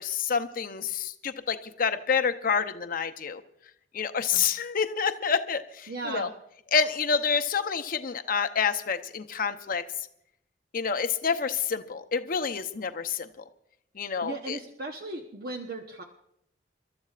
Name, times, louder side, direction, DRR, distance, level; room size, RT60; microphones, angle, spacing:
voice 1, 0.0-3.4 3.9-6.3 6.7-9.8 10.7-13.3 14.0-14.6, left 6 dB, 50° left, 9 dB, 0.7 m, -28 dB
voice 2, 5.9-6.3 14.0-16.0, right 2 dB, 60° right, 2 dB, 1.0 m, -37 dB
29.5 x 13.0 x 2.5 m, 0.74 s
head